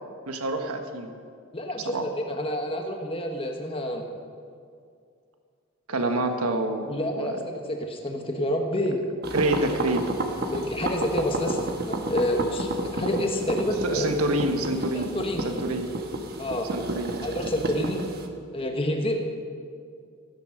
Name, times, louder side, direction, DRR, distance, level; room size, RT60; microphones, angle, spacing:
voice 1, 0.3-1.1 1.9-2.0 5.9-7.4 9.3-10.0 13.8-15.1 15.4-15.9 16.7-17.2, right 2 dB, 85° right, 5 dB, 1.3 m, -27 dB
voice 2, 1.5-4.0 5.9-6.2 6.9-9.0 10.5-14.1 14.9-15.5 16.4-16.7 17.2-18.0 18.5-19.2, left 1 dB, 25° left, 3 dB, 1.3 m, -28 dB
sound 1, 9.2-18.3, right 1 dB, 45° right, 1.2 m, -31 dB
15.5 x 9.7 x 6.5 m, 2.3 s
head